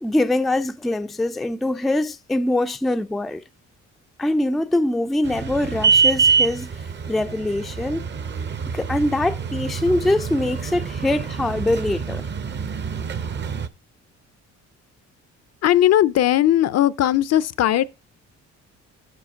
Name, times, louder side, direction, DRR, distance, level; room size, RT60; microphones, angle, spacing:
voice 1, 0.0-3.4 4.2-6.7 7.1-8.0 8.7-12.2, left 1 dB, ahead, 0.3 m, -23 dB
sound 1, 5.2-13.7, right 5 dB, 35° right, 0.6 m, -25 dB
voice 2, 15.6-17.8, left 12 dB, 55° left, 0.5 m, -18 dB
7.6 x 5.6 x 5.0 m
cardioid pair, 90°, 30 cm